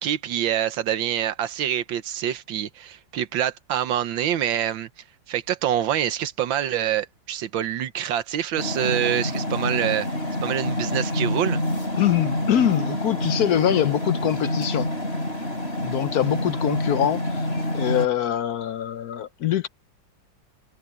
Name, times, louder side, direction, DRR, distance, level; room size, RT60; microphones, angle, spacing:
voice 1, 0.0-4.9 5.3-10.1 10.4-11.6, right 10 dB, 80° right, 1.7 m, -26 dB
sound 1, 8.6-18.1, left 1 dB, 30° left, 6.9 m, -27 dB
voice 2, 12.0-14.9 15.8-17.5 17.7-19.7, left 11 dB, 65° left, 1.0 m, -23 dB
omnidirectional pair, 2.1 m